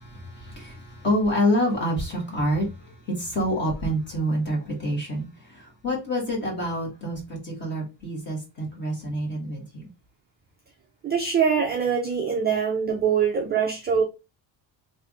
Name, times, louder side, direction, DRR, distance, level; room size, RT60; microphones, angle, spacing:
voice 1, 0.0-9.9, equal, 25° left, 1.6 m, -27 dB
voice 2, 11.0-14.0, right 6 dB, 25° right, 0.3 m, -23 dB
3.5 x 2.6 x 3.6 m
cardioid pair, 175°, 44 cm